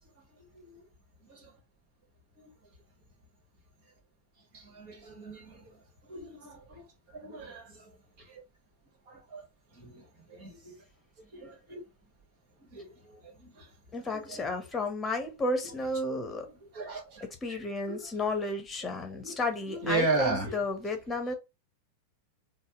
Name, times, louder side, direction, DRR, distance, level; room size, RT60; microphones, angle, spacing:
voice 1, 0.4-0.8 1.3-1.5 2.4-2.5 4.5-8.4 9.1-9.4 9.7-10.8 11.3-11.8 12.6-14.6 15.6-15.7 16.4-17.6 17.9-18.1 18.8-19.4 19.7-20.5, right 3 dB, 45° right, 1.5 m, -37 dB
voice 2, 13.9-16.5 17.4-21.3, left 2 dB, 15° left, 1.0 m, -32 dB
4.1 x 2.1 x 3.7 m
figure-of-eight pair, 90°, 0 cm